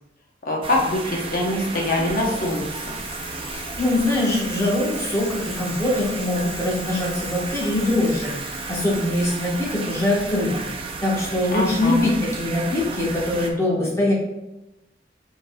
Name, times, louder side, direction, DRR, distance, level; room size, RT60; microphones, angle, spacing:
voice 1, 0.4-3.0 11.5-12.1, left 1 dB, 50° left, -1 dB, 0.9 m, -24 dB
sound 1, 0.6-13.5, right 4 dB, 30° right, 0.4 m, -34 dB
Bicycle, 1.4-10.9 12.0-12.1, left 2 dB, 90° left, 1.5 m, -40 dB
voice 2, 3.5-14.1, left 1 dB, 15° left, -5 dB, 1.2 m, -23 dB
5.1 x 3.9 x 2.3 m, 0.95 s
head